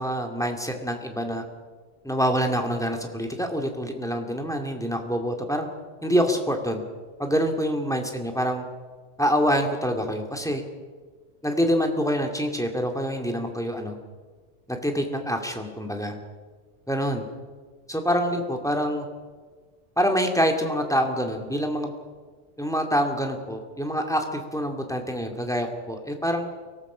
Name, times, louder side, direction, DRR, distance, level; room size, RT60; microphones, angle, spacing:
voice 1, 0.0-1.4 2.0-5.7 6.0-6.8 7.2-8.6 9.2-10.6 11.4-14.0 14.7-16.1 16.9-17.3 17.9-19.1 20.0-21.9 22.6-26.5, equal, 5° left, 3 dB, 2.3 m, -26 dB
23.5 x 18.5 x 6.2 m, 1.5 s
omnidirectional pair, 1.2 m